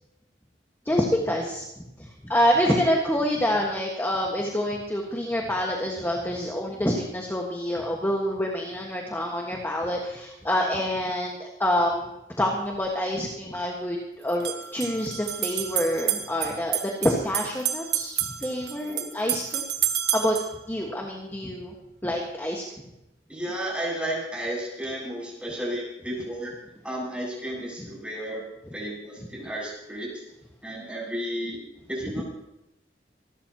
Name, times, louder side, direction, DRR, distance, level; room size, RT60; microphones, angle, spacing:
voice 1, 0.8-1.6 2.0-12.1 12.4-19.6 20.1-20.4 20.7-21.7 22.0-22.6, equal, 15° left, -1 dB, 1.6 m, -27 dB
sound 1, 12.7-12.8 14.3-20.5, right 11 dB, 70° right, 1.3 m, -30 dB
voice 2, 23.3-26.5 26.8-28.5 28.7-30.2 30.6-31.6 31.9-32.2, right 1 dB, 5° right, -4 dB, 7.4 m, -33 dB
26.5 x 12.5 x 3.0 m, 0.88 s
head